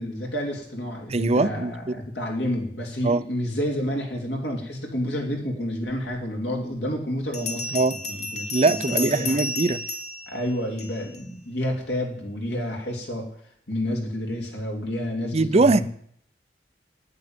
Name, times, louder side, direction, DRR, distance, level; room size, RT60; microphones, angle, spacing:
voice 1, 0.0-9.4 10.3-13.3 13.7-15.8, equal, 70° left, 1 dB, 3.4 m, -30 dB
voice 2, 1.1-2.0 3.0-3.2 7.7-8.0 8.5-9.8 15.3-15.8, right 3 dB, 35° right, 15 dB, 0.6 m, -21 dB
Bell, 7.3-11.2, left 3 dB, 45° left, 1.8 m, -32 dB
11.0 x 9.4 x 9.1 m, 0.66 s
head